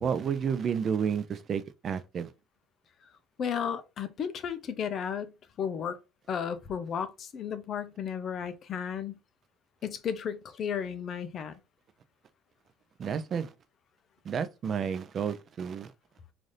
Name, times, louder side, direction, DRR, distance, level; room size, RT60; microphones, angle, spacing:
voice 1, 0.0-2.3 13.0-13.5 14.2-15.9, right 7 dB, 35° right, 0.4 m, -31 dB
voice 2, 3.4-6.0 6.3-9.2 9.8-11.6, left 7 dB, 40° left, 0.5 m, -34 dB
4.0 x 2.5 x 3.2 m
cardioid pair, 140°, 0 cm